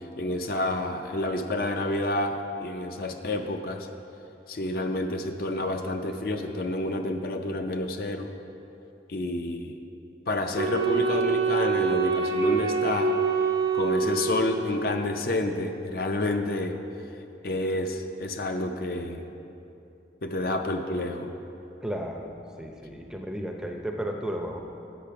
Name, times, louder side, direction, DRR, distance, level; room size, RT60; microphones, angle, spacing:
voice 1, 0.2-3.9 4.5-8.3 9.1-9.7 10.3-13.1 13.7-16.8 17.4-19.3 20.2-21.3, left 1 dB, 55° left, 5 dB, 0.5 m, -29 dB
Wind instrument woodwind instrument, 10.6-15.0, right 5 dB, 75° right, 0.8 m, -26 dB
voice 2, 21.8-22.3 22.6-24.6, equal, 5° right, 2 dB, 0.5 m, -33 dB
8.5 x 6.8 x 5.7 m, 2.7 s
head